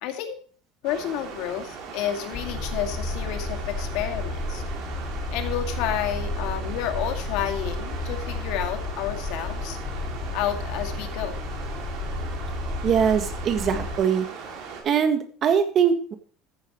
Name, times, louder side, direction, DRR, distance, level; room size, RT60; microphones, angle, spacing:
voice 1, 0.0-0.4 0.8-4.6 5.3-9.8 10.3-11.4, left 11 dB, 65° left, 5 dB, 2.2 m, -30 dB
sound 1, 0.8-14.8, right 5 dB, 55° right, 3.8 m, -39 dB
sound 2, 2.3-14.0, left 2 dB, 30° left, 3.8 m, -32 dB
voice 2, 12.8-14.3 14.8-16.1, right 7 dB, 30° right, 7 dB, 1.7 m, -22 dB
14.5 x 9.3 x 3.1 m, 0.43 s
cardioid pair, 170°, 0 cm